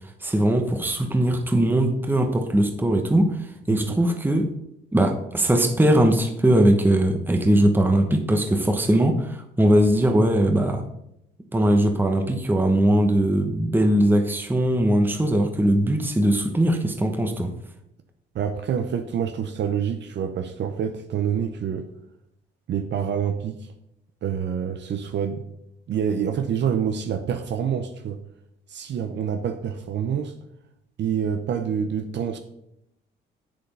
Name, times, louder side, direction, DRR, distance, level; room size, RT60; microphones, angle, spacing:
voice 1, 0.2-4.5 4.9-10.8 11.5-17.5, right 1 dB, 10° right, 1.1 m, -20 dB
voice 2, 3.7-4.0 18.3-21.9 22.7-23.7 24.2-25.4 25.9-28.2 28.7-30.3 31.0-32.4, right 8 dB, 65° right, 0.8 m, -27 dB
7.7 x 7.2 x 5.5 m
cardioid pair, 90°, 20 cm